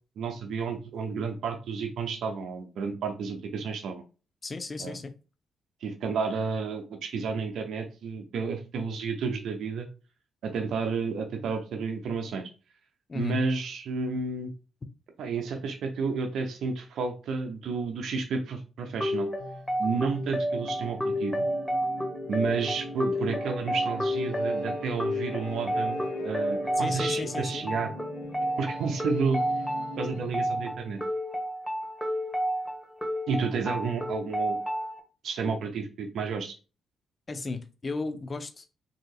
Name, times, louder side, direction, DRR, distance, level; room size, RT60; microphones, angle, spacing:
voice 1, 0.2-4.0 4.8-5.0 5.8-9.9 10.4-12.5 13.1-14.5 15.2-19.3 19.8-21.3 22.3-27.9 28.6-29.4 30.0-31.0 33.3-34.6 35.2-36.5, right 5 dB, 70° right, 0.5 m, -31 dB
voice 2, 4.4-5.1 13.1-13.4 26.8-27.6 37.3-38.7, left 3 dB, 40° left, 0.5 m, -34 dB
sound 1, 19.0-35.0, equal, 15° left, 1.2 m, -31 dB
sound 2, 19.4-30.8, equal, 75° left, 0.9 m, -40 dB
3.8 x 2.7 x 2.4 m
hypercardioid pair, 45°, 0 cm